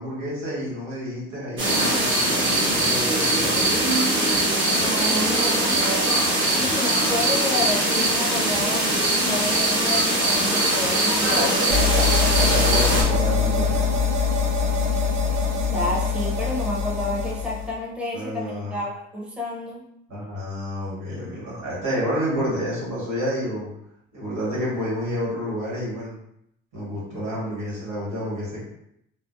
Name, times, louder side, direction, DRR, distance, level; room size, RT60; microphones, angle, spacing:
voice 1, 0.0-3.6 6.5-7.1 12.4-14.0 18.1-18.8 20.1-23.7 24.1-26.1 26.7-28.6, equal, 80° right, -7 dB, 1.3 m, -30 dB
sound 1, 1.6-13.0, right 1 dB, 40° right, 1.0 m, -21 dB
voice 2, 4.7-5.9 6.4-12.2 15.7-19.8, left 2 dB, 5° right, -4 dB, 0.6 m, -30 dB
sound 2, 11.7-17.7, left 5 dB, 60° right, 0.5 m, -23 dB
2.5 x 2.0 x 2.5 m, 0.76 s
cardioid pair, 90°, 30 cm